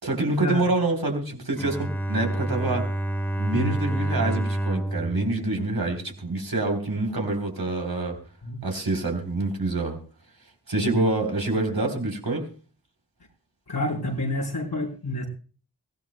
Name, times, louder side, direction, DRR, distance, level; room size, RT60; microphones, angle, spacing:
voice 1, 0.0-2.9 3.4-8.2 8.6-10.0 10.7-12.5, right 2 dB, 60° right, 3 dB, 3.6 m, -26 dB
Bowed string instrument, 1.6-6.5, right 1 dB, 5° left, 1.2 m, -29 dB
voice 2, 10.8-11.1 13.7-15.3, left 1 dB, 70° left, -2 dB, 4.3 m, -28 dB
23.0 x 16.5 x 2.2 m, 0.39 s
wide cardioid pair, 65°, 41 cm